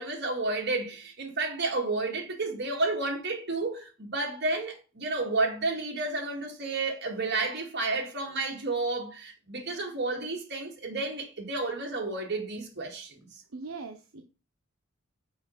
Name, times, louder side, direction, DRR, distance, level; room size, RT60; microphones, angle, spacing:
voice 1, 0.0-13.2, right 3 dB, 50° right, 2.1 m, -31 dB
voice 2, 13.5-14.2, right 4 dB, 70° right, 0.8 m, -40 dB
6.2 x 4.5 x 5.6 m
head